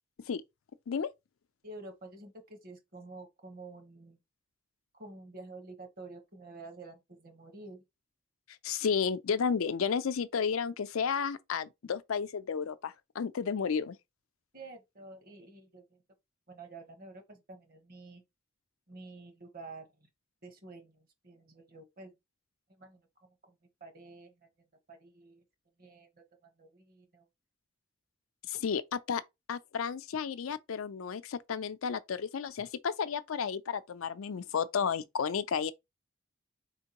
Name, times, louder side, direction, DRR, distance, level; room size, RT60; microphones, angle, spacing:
voice 1, 1.6-4.2 5.0-7.8 14.5-16.0 16.5-18.2 18.9-19.9 20.4-22.1 22.8-23.0 23.5-23.6 23.8-24.3 24.9-25.4 25.8-26.1 26.4-27.3, right 3 dB, 45° right, 1.2 m, -49 dB
voice 2, 8.6-14.0 28.5-29.2 29.5-35.7, left 6 dB, 85° left, 0.5 m, -32 dB
4.4 x 3.6 x 2.9 m
head